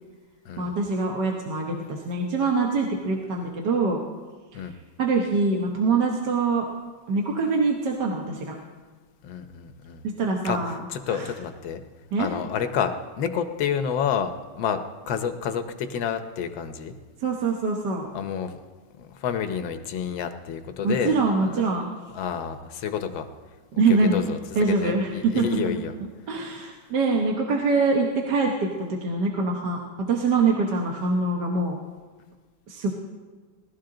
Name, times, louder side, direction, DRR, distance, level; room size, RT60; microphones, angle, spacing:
voice 1, 0.6-4.0 4.5-4.6 5.0-6.6 7.1-8.5 10.2-10.8 11.1-11.3 12.1-12.3 17.2-18.1 20.8-21.9 23.8-24.2 24.5-25.8 26.3-29.8 30.1-31.8 32.7-32.9, right 4 dB, 65° right, 0 dB, 1.7 m, -24 dB
voice 2, 9.2-10.0 10.4-10.6 10.9-11.8 12.2-14.8 15.1-16.9 18.1-18.6 19.0-21.2 21.4-21.6 22.1-23.3 23.9-25.9, left 7 dB, 85° left, 8 dB, 1.6 m, -29 dB
19.0 x 13.0 x 3.8 m, 1.4 s
omnidirectional pair, 2.0 m